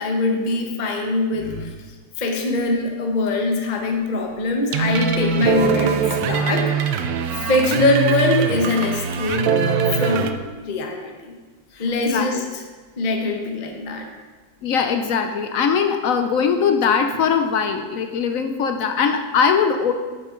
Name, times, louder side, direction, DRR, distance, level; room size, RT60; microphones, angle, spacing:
voice 1, 0.0-1.8 2.2-7.0 7.3-9.5 9.9-10.4 10.6-11.3 11.8-12.4 13.0-14.1, left 2 dB, 35° left, 2 dB, 0.8 m, -22 dB
sound 1, 4.7-10.3, right 7 dB, 70° right, 0.9 m, -22 dB
voice 2, 11.7-12.3 14.6-19.9, left 6 dB, 70° left, 6 dB, 0.8 m, -21 dB
9.4 x 6.8 x 3.7 m, 1.3 s
omnidirectional pair, 2.0 m